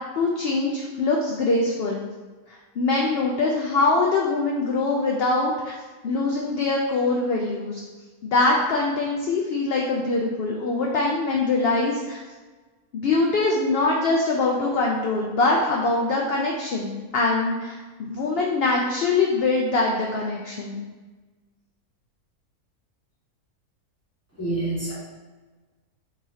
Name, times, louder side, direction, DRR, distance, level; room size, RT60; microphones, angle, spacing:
voice 1, 0.0-2.0 2.5-5.7 6.0-7.8 8.2-12.2 12.9-20.8, left 3 dB, 70° left, -1 dB, 0.5 m, -23 dB
voice 2, 24.4-24.9, right 2 dB, 10° right, -8 dB, 1.3 m, -27 dB
6.1 x 3.0 x 2.8 m, 1.3 s
omnidirectional pair, 1.6 m